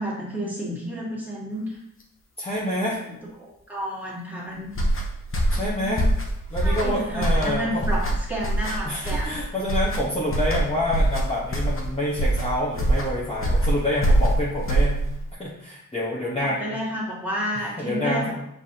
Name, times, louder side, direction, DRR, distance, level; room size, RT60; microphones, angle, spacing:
voice 1, 0.0-1.7 3.0-3.1 3.4-4.7 5.5-6.0 6.6-9.4 16.2-18.3, equal, 5° right, -7 dB, 2.1 m, -31 dB
voice 2, 2.4-3.0 5.5-6.0 6.5-7.8 8.8-15.0 15.4-16.7 17.8-18.3, left 1 dB, 20° left, -8 dB, 1.2 m, -27 dB
sound 1, 4.7-15.3, right 1 dB, 40° left, 1.0 m, -24 dB
7.5 x 4.7 x 2.9 m, 0.79 s
wide cardioid pair, 140°, 33 cm